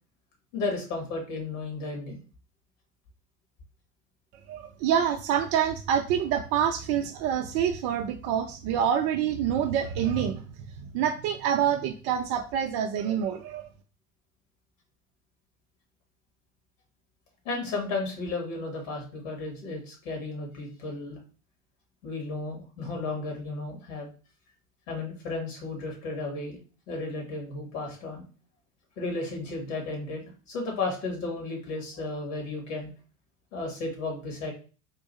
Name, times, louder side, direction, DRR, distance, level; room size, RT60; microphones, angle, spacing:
voice 1, 0.5-2.2 17.4-21.2 22.0-24.1 24.9-26.6 26.9-28.2 29.0-32.9 33.5-34.5, left 3 dB, 60° left, 1 dB, 2.2 m, -34 dB
voice 2, 4.5-10.4 10.8-13.7, right 9 dB, 35° right, 5 dB, 0.4 m, -27 dB
3.7 x 2.7 x 4.1 m, 0.37 s
figure-of-eight pair, 85°, 44 cm